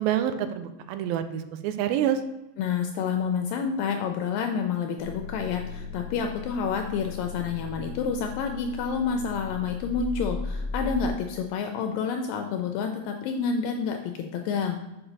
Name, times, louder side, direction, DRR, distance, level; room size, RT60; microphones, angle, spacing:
voice 1, 0.0-2.2, right 10 dB, 85° right, 10 dB, 2.4 m, -27 dB
voice 2, 2.6-14.8, left 6 dB, 80° left, 5 dB, 2.1 m, -29 dB
sound 1, 5.0-11.1, left 4 dB, 65° right, 3.2 m, -36 dB
7.0 x 5.5 x 4.0 m, 1.0 s
omnidirectional pair, 4.2 m